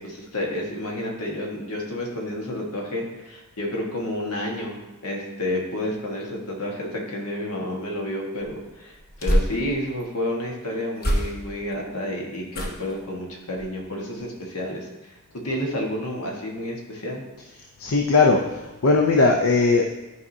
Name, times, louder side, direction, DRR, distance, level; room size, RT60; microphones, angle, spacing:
voice 1, 0.0-17.2, left 1 dB, 80° left, -1 dB, 1.5 m, -30 dB
sound 1, 8.4-10.1 11.0-11.7 12.5-13.0 13.5-13.8 14.1-14.2, equal, 45° left, 1.0 m, -27 dB
voice 2, 17.8-19.9, left 3 dB, 65° left, 1 dB, 0.6 m, -19 dB
11.5 x 4.8 x 2.7 m, 1.0 s
head